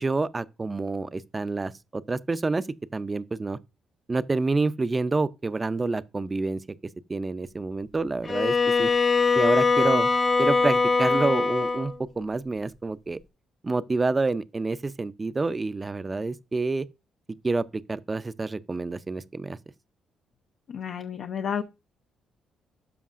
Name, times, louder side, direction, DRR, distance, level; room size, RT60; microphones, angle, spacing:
voice 1, 0.0-2.7 2.9-3.6 4.1-6.6 7.1-8.9 9.4-10.1 10.4-13.2 13.6-16.9 17.4-19.6, right 3 dB, 25° right, 0.4 m, -28 dB
Bowed string instrument, 8.2-12.0, left 4 dB, 40° left, 1.0 m, -22 dB
voice 2, 20.7-21.6, left 7 dB, 65° left, 0.5 m, -31 dB
12.5 x 5.2 x 2.5 m
cardioid pair, 90°, 0 cm